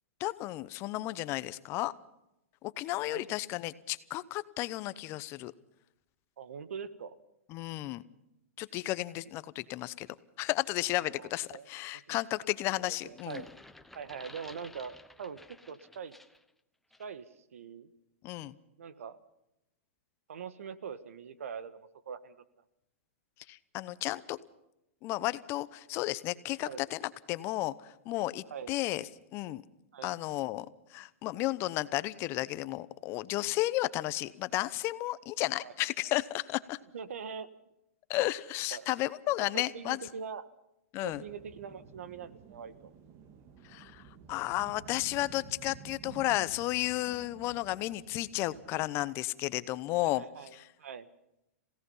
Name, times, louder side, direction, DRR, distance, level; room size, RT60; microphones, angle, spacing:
voice 1, 0.2-1.9 2.6-5.5 7.5-8.0 8.6-10.1 10.4-13.4 18.2-18.6 23.5-24.4 25.0-27.0 27.3-29.6 30.0-36.8 38.1-40.0 40.9-41.2 43.6-44.0 44.3-50.2 50.5-50.7, left 17 dB, 35° left, 16 dB, 0.9 m, -33 dB
voice 2, 6.4-7.1 11.0-11.7 12.1-12.2 12.8-13.5 13.9-15.4 15.7-16.1 17.0-17.9 18.8-19.2 20.3-22.4 26.6-26.8 28.5-28.7 29.9-30.1 35.6-35.7 36.9-37.5 38.7-38.9 39.5-40.4 41.0-42.9 50.0-51.1, right 6 dB, 85° right, 13 dB, 1.5 m, -43 dB
sound 1, 13.0-16.5 16.9-17.1, left 2 dB, 5° left, 0.9 m, -53 dB
sound 2, 41.1-48.9, right 6 dB, 35° right, 1.9 m, -52 dB
27.5 x 17.0 x 5.6 m, 0.85 s
hypercardioid pair, 140°, 7 cm